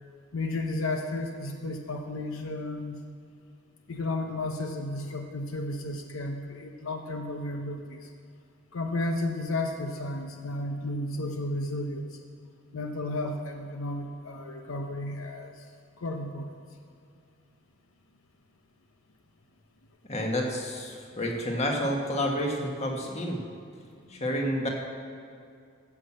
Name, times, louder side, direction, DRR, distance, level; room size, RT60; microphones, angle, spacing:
voice 1, 0.3-3.0 3.9-8.1 8.7-12.0 12.7-15.5 16.0-16.5 24.1-24.2, left 2 dB, 80° left, 4 dB, 0.8 m, -33 dB
voice 2, 20.1-23.4 24.1-24.7, equal, 30° left, 0 dB, 1.6 m, -29 dB
14.5 x 6.0 x 7.5 m, 2.4 s
head